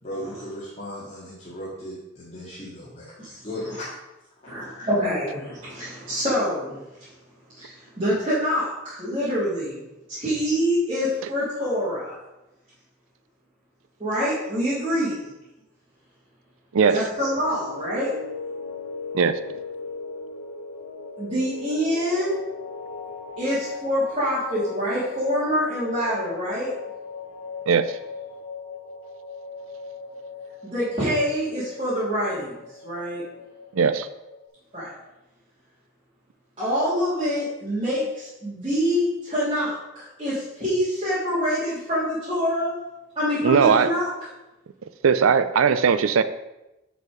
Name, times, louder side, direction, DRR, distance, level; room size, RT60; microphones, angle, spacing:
voice 1, 0.0-3.1 3.4-3.9 4.4-4.9, equal, 30° left, 2.1 m, -36 dB
voice 2, 4.5-6.8 7.6-9.8 10.1-12.1 14.0-15.3 16.8-18.1 21.2-22.4 23.4-26.7 30.6-32.5 32.8-33.2 34.7-34.9 36.6-42.7 43.1-44.1, equal, 25° right, 2.8 m, -26 dB
sound 1, 17.1-34.5, left 4 dB, 85° left, 1.5 m, -38 dB
voice 3, 27.7-28.0 33.8-34.1 43.4-43.9 45.0-46.2, right 6 dB, 80° right, 0.5 m, -19 dB
8.7 x 5.1 x 4.9 m
head